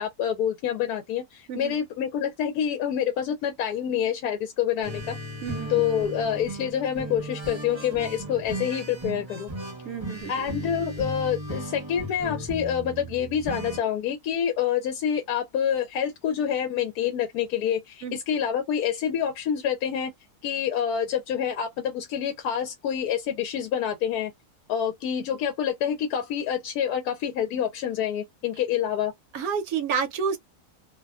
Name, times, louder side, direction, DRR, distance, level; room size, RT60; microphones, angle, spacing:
voice 1, 0.0-5.2 5.7-9.5 10.3-20.1 20.4-24.3 24.7-29.1, left 9 dB, 80° left, 1.1 m, -27 dB
sound 1, 4.8-13.8, right 1 dB, 25° right, 0.6 m, -36 dB
voice 2, 5.4-5.8 9.8-10.5 18.0-18.2 29.3-30.4, right 6 dB, 70° right, 1.1 m, -30 dB
2.8 x 2.1 x 2.3 m
omnidirectional pair, 1.6 m